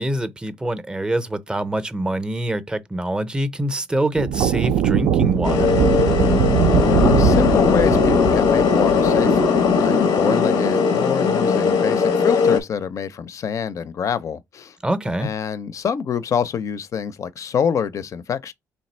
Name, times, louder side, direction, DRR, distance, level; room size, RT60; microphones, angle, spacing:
voice 1, 0.0-5.9 14.8-15.3, right 1 dB, 10° right, 0.5 m, -25 dB
sound 1, 4.2-9.8, right 8 dB, 85° right, 0.4 m, -21 dB
sound 2, 5.4-12.6, left 5 dB, 90° left, 0.6 m, -18 dB
voice 2, 6.7-14.8 15.2-18.5, left 7 dB, 50° left, 0.4 m, -26 dB
3.3 x 2.7 x 4.2 m
cardioid pair, 105°, 7 cm